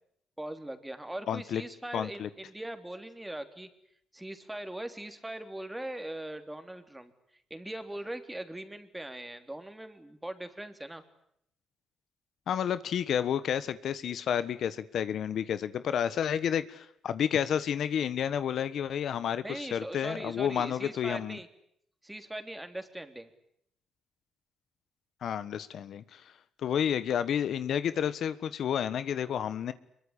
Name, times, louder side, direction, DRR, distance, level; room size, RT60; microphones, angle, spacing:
voice 1, 0.4-3.7 4.1-7.1 7.5-11.0 19.4-21.5 22.0-23.3, right 1 dB, 10° right, 8 dB, 3.4 m, -40 dB
voice 2, 1.3-1.6 1.9-2.3 12.5-21.4 25.2-26.3 26.6-29.7, left 9 dB, 65° left, 14 dB, 1.4 m, -30 dB
25.0 x 23.0 x 10.0 m, 0.72 s
cardioid pair, 90°, 0 cm